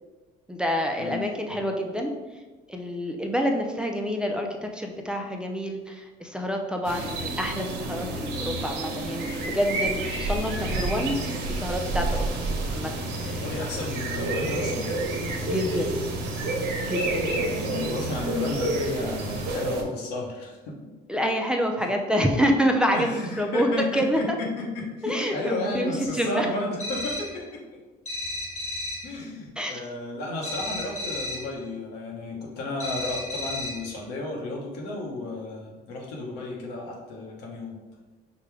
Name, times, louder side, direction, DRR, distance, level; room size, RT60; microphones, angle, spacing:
voice 1, 0.5-2.1 2.7-12.2 12.7-12.9 13.2-13.4 15.4-15.9 16.9-17.3 21.1-24.4 25.0-26.5 29.6-29.8, equal, 5° right, 1 dB, 0.4 m, -27 dB
sound 1, 6.8-19.8, right 2 dB, 80° right, 0.7 m, -29 dB
voice 2, 13.3-14.9 17.3-20.7 22.9-27.6 29.0-37.8, left 2 dB, 90° left, -2 dB, 1.0 m, -33 dB
sound 2, 26.8-27.4 28.1-29.1 30.4-31.5 32.8-33.9, left 1 dB, 45° left, 1.1 m, -33 dB
5.0 x 2.2 x 3.3 m, 1.2 s
cardioid pair, 110°, 17 cm